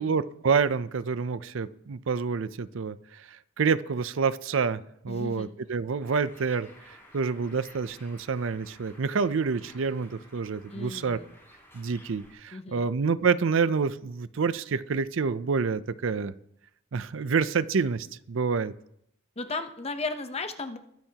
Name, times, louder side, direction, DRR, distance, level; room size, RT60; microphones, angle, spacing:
voice 1, 0.0-11.2 11.7-16.3 16.9-18.7, right 5 dB, 65° right, 15 dB, 0.5 m, -28 dB
voice 2, 5.1-5.5 10.7-11.3 12.5-12.9 19.4-20.8, left 3 dB, 30° left, 8 dB, 0.8 m, -35 dB
Bird, 6.0-12.3, left 1 dB, 10° left, 3.7 m, -54 dB
21.5 x 10.5 x 2.9 m, 0.75 s
head